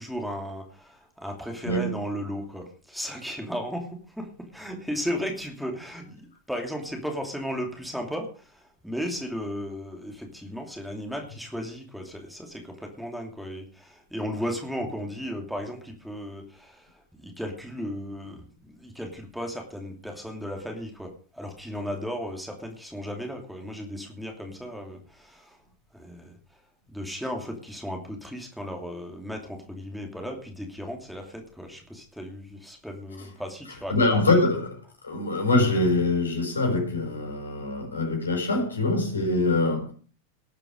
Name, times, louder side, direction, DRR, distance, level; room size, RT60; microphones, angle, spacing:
voice 1, 0.0-25.6 25.9-26.4 26.9-34.0, equal, ahead, 2 dB, 2.7 m, -35 dB
voice 2, 33.9-34.8 35.0-39.9, left 2 dB, 75° left, 2 dB, 6.3 m, -24 dB
19.0 x 8.9 x 5.2 m, 0.40 s
figure-of-eight pair, 90°, 0 cm